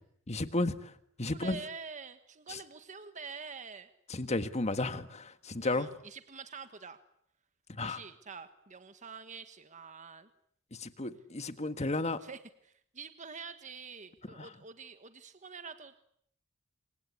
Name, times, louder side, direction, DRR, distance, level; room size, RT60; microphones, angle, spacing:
voice 1, 0.3-0.9 1.2-1.6 2.5-2.6 4.1-5.9 7.8-8.0 10.8-12.2 14.4-14.5, left 2 dB, 30° left, 10 dB, 1.6 m, -33 dB
voice 2, 1.3-3.9 5.6-7.0 7.8-10.3 12.2-16.0, right 5 dB, 35° right, 9 dB, 1.4 m, -46 dB
27.5 x 24.5 x 8.4 m, 0.68 s
head